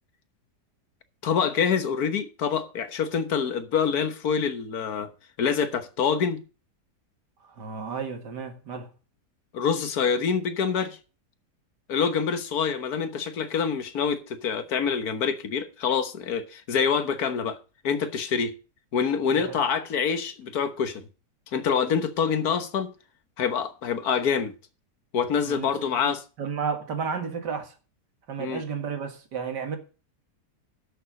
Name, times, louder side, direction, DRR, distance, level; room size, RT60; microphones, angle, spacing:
voice 1, 1.2-5.1 5.4-6.4 9.5-11.0 11.9-17.6 17.8-18.5 18.9-21.1 21.5-22.9 23.4-24.5 25.1-26.2 28.4-28.6, left 6 dB, 65° left, 1.7 m, -26 dB
voice 2, 7.4-8.9 19.3-19.6 25.4-27.7 28.3-29.8, right 6 dB, 90° right, 2.4 m, -33 dB
11.0 x 7.0 x 6.4 m
omnidirectional pair, 1.8 m